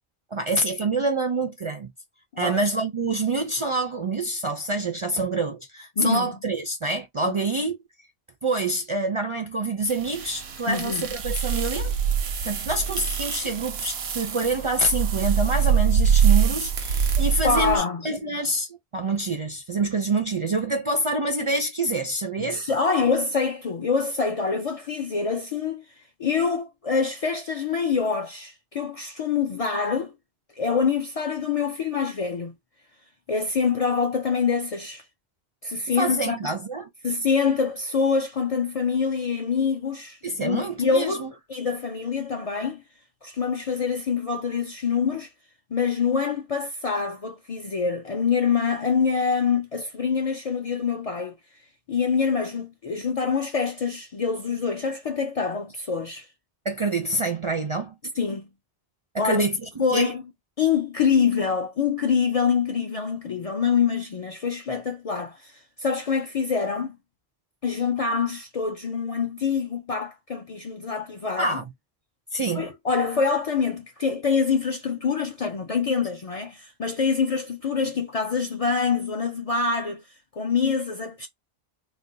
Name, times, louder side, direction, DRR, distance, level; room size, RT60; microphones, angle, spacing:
voice 1, 0.3-1.9 2.4-7.8 8.4-11.9 12.4-22.6 36.0-36.9 40.2-41.3 56.6-58.0 59.1-60.1 71.4-71.6 72.3-72.7, right 2 dB, 45° right, 0.4 m, -26 dB
voice 2, 6.0-6.3 7.3-7.4 10.7-11.1 17.4-18.0 22.4-25.8 26.2-30.1 30.6-32.5 33.3-35.0 35.6-36.5 37.0-42.8 43.2-45.3 45.7-51.3 51.9-56.3 58.2-58.5 59.2-59.5 59.8-60.2 60.6-67.0 67.6-71.5 72.5-80.0 80.3-81.3, left 5 dB, 55° left, 0.4 m, -25 dB
sound 1, 9.9-17.8, right 7 dB, 80° right, 0.8 m, -24 dB
2.5 x 2.2 x 3.7 m
omnidirectional pair, 1.0 m